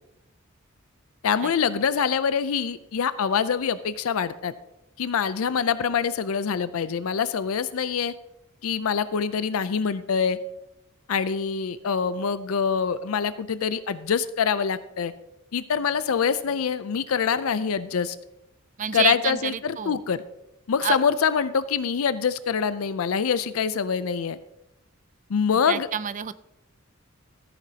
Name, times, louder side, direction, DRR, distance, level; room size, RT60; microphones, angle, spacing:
voice 1, 1.2-4.5 5.0-8.1 8.6-10.4 11.1-15.1 15.5-18.2 18.9-20.2 20.7-24.4 25.3-25.9, left 6 dB, 85° left, 14 dB, 0.5 m, -25 dB
voice 2, 18.8-20.0 20.8-21.0 25.7-26.3, right 8 dB, 35° right, 15 dB, 0.4 m, -28 dB
14.0 x 10.0 x 2.8 m, 0.89 s
head